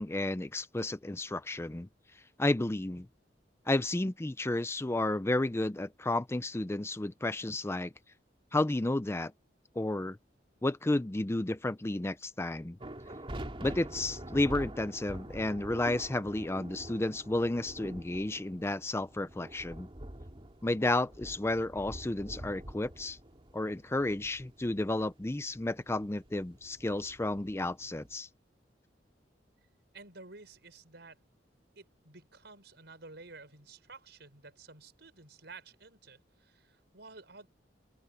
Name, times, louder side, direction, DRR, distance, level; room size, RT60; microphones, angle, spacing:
voice 1, 0.0-1.9 2.4-3.1 3.7-7.9 8.5-9.3 9.8-10.2 10.6-12.8 13.6-19.9 20.6-23.2 23.5-28.3, left 2 dB, 15° left, 0.5 m, -32 dB
sound 1, 12.8-28.1, right 1 dB, 30° right, 2.5 m, -46 dB
voice 2, 29.9-31.2 31.7-37.5, right 3 dB, 65° right, 6.5 m, -52 dB
open air
head